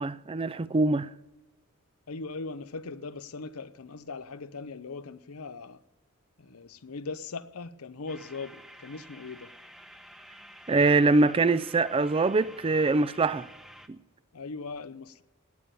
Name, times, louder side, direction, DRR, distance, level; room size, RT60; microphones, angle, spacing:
voice 1, 0.0-1.1 10.7-13.5, right 3 dB, 25° right, 0.4 m, -23 dB
voice 2, 2.1-5.8 6.4-9.5 14.3-15.2, left 4 dB, 85° left, 0.7 m, -39 dB
sound 1, 8.1-13.9, equal, ahead, 0.8 m, -50 dB
18.0 x 8.7 x 6.8 m
head